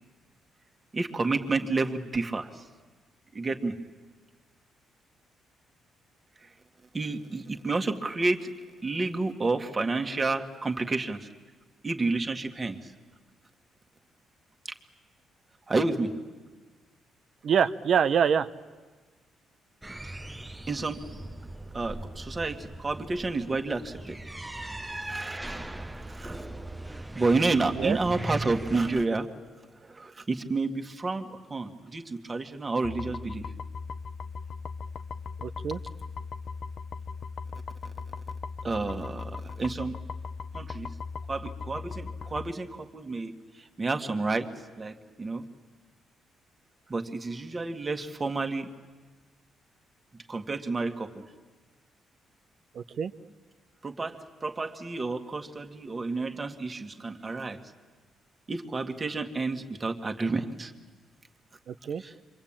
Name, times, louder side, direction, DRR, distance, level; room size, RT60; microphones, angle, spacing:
voice 1, 0.9-2.6 3.3-3.8 6.9-8.5 8.8-11.3 11.8-12.9 15.7-16.1 20.0-20.2 20.7-21.0 21.7-24.2 25.1-25.4 26.1-26.4 27.1-29.3 29.8-33.5 38.6-40.0 40.5-40.9 41.3-43.3 43.6-44.5 44.8-45.4 46.9-48.7 50.3-51.2 53.8-57.6 58.5-60.7 62.0-62.1, right 3 dB, 30° right, 5 dB, 2.0 m, -30 dB
voice 2, 17.4-18.5 27.8-28.0 35.4-35.8 52.7-53.1 61.7-62.0, right 7 dB, 60° right, 11 dB, 0.9 m, -25 dB
sound 1, 19.8-29.1, right 1 dB, 10° right, 1.0 m, -39 dB
sound 2, 32.8-42.5, left 5 dB, 50° left, 0.9 m, -38 dB
27.5 x 24.0 x 8.9 m, 1.3 s
cardioid pair, 90°, 0 cm